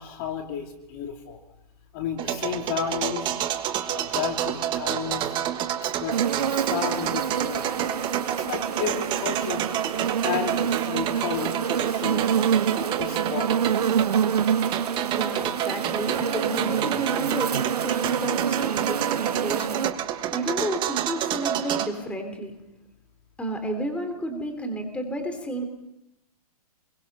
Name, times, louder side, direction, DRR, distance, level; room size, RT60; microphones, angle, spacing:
voice 1, 0.0-1.4 1.9-3.3 3.9-5.3 5.8-8.0 8.3-12.3 12.7-13.5, left 8 dB, 40° left, 3 dB, 3.0 m, -33 dB
sound 1, 2.2-21.9, right 11 dB, 25° right, 1.5 m, -29 dB
sound 2, 6.1-19.9, right 8 dB, 85° right, 0.9 m, -27 dB
voice 2, 15.1-17.5 17.8-22.6 23.4-25.6, right 1 dB, 5° left, 5 dB, 3.5 m, -31 dB
27.5 x 22.5 x 5.6 m, 0.89 s
hypercardioid pair, 140°, 20 cm